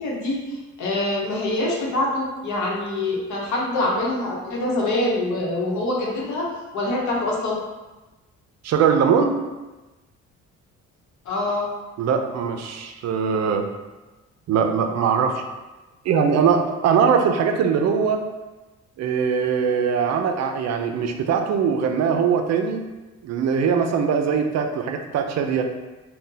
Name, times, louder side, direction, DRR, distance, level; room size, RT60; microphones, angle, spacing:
voice 1, 0.0-6.5 6.7-7.6 11.2-11.7, left 2 dB, 75° left, -3 dB, 0.9 m, -25 dB
voice 2, 8.6-9.4 12.0-13.7 14.5-15.4 16.0-18.2 19.0-22.8 23.2-25.7, right 6 dB, 60° right, 5 dB, 0.4 m, -21 dB
2.7 x 2.2 x 3.8 m, 1.1 s
cardioid pair, 90°, 30 cm